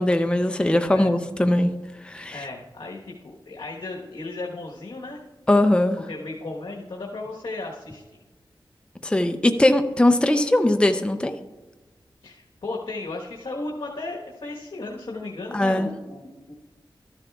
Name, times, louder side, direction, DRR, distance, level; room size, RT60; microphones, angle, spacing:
voice 1, 0.0-1.7 2.0-2.4 5.5-6.0 9.0-11.3 15.5-15.9, left 1 dB, 10° left, 8 dB, 0.5 m, -20 dB
voice 2, 2.3-5.2 6.0-8.0 12.2-16.5, left 2 dB, 70° left, -2 dB, 1.2 m, -35 dB
13.0 x 10.5 x 2.4 m, 1.2 s
wide cardioid pair, 60°, 9 cm